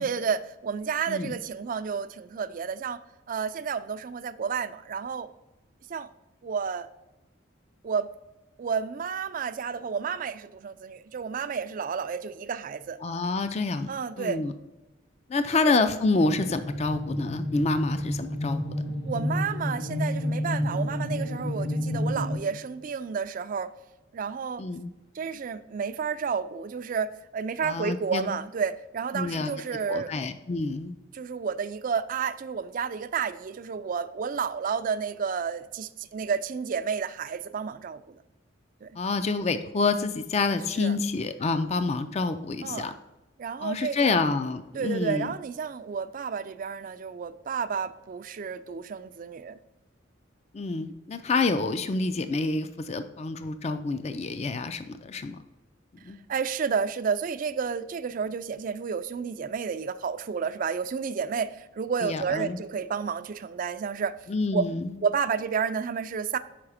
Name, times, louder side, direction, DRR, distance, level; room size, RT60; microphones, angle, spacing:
voice 1, 0.0-5.3 5.9-6.1 6.4-6.9 7.8-8.1 8.6-13.0 13.9-14.4 15.5-15.7 19.1-23.7 24.1-24.7 25.1-30.1 31.1-38.2 38.8-38.9 40.8-41.0 42.6-42.9 43.4-44.2 44.7-49.6 56.3-64.2 64.5-64.7 65.0-66.4, right 6 dB, 45° right, 12 dB, 0.4 m, -31 dB
voice 2, 1.1-1.4 13.0-13.9 14.2-14.5 15.3-18.8 24.6-24.9 27.6-28.3 29.1-29.5 29.9-31.0 39.0-42.9 43.6-45.3 50.5-55.4 56.0-56.2 62.0-62.6 64.3-65.0, left 3 dB, 35° left, 10 dB, 0.4 m, -28 dB
sound 1, 16.2-22.4, left 1 dB, 60° left, 2.0 m, -30 dB
5.9 x 4.8 x 4.9 m, 1.0 s
head